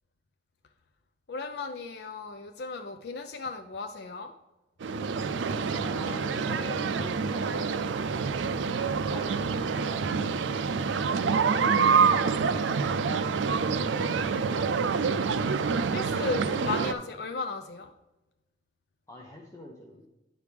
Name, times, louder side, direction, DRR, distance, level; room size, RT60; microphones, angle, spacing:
voice 1, 1.3-4.3 15.9-17.9, left 4 dB, 60° left, 6 dB, 0.5 m, -35 dB
sound 1, 4.8-16.9, right 5 dB, 85° right, 0.4 m, -27 dB
voice 2, 5.8-8.0 9.1-10.8 11.5-12.4 13.7-15.4 16.3-16.6 19.1-20.1, left 1 dB, 15° left, -2 dB, 0.8 m, -44 dB
10.5 x 4.9 x 3.4 m, 1.0 s
head